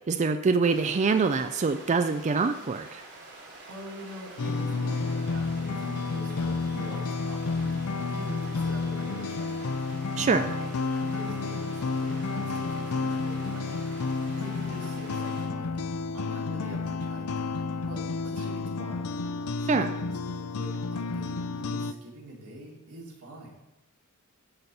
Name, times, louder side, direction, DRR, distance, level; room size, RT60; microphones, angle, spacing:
voice 1, 0.1-3.0 10.2-10.5 19.7-19.9, right 4 dB, 30° right, 8 dB, 0.4 m, -25 dB
sound 1, 0.6-15.5, right 2 dB, 55° right, 2.7 m, -47 dB
voice 2, 3.7-9.8 10.4-13.9 14.3-15.7 16.1-19.1 19.6-23.6, equal, 90° right, -2 dB, 2.4 m, -44 dB
sound 2, 4.4-21.9, left 4 dB, 85° left, 0.5 m, -31 dB
12.5 x 4.3 x 5.4 m, 0.96 s
head